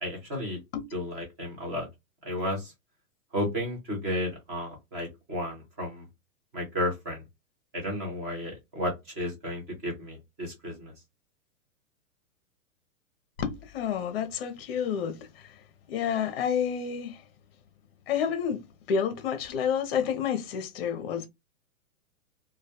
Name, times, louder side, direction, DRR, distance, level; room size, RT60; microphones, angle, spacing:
voice 1, 0.0-0.6 0.9-1.9 2.2-2.7 3.3-6.1 6.5-7.2 7.7-10.9, left 1 dB, 15° right, 0.4 m, -33 dB
voice 2, 13.4-15.6 15.9-17.2 18.1-21.3, left 7 dB, 45° left, 0.6 m, -29 dB
2.2 x 2.2 x 2.7 m
hypercardioid pair, 160°, 43 cm